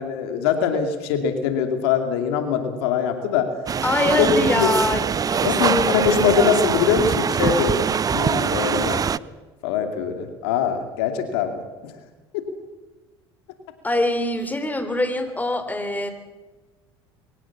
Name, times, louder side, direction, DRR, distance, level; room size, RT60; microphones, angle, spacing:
voice 1, 0.0-3.5 4.2-4.7 5.4-7.8 8.1-9.1 9.6-11.5, left 7 dB, 75° left, 6 dB, 2.6 m, -22 dB
sound 1, 3.7-9.2, right 7 dB, 25° right, 0.6 m, -23 dB
voice 2, 3.8-6.5 13.8-16.1, left 2 dB, 10° left, 9 dB, 3.6 m, -24 dB
22.5 x 17.5 x 7.2 m, 1.2 s
hypercardioid pair, 75°, 13 cm